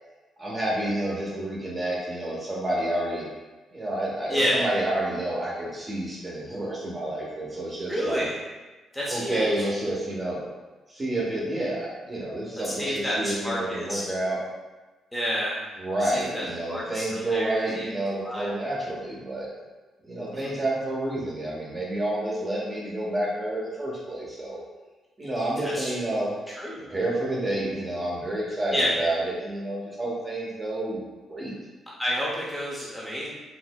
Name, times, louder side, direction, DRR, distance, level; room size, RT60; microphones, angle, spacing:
voice 1, 0.4-3.3 3.7-8.3 9.1-10.4 10.9-14.4 15.8-19.5 20.0-24.6 25.2-26.3 26.9-31.5, right 1 dB, 25° right, -4 dB, 1.0 m, -29 dB
voice 2, 4.3-4.6 7.9-8.4 8.9-9.7 12.6-14.0 15.1-15.6 16.0-17.9 18.2-18.5 20.3-20.5 25.6-25.8 26.6-26.8 28.7-28.9 32.0-33.3, equal, 5° left, -6 dB, 0.7 m, -29 dB
4.0 x 2.6 x 2.2 m, 1.2 s
cardioid pair, 90°, 0 cm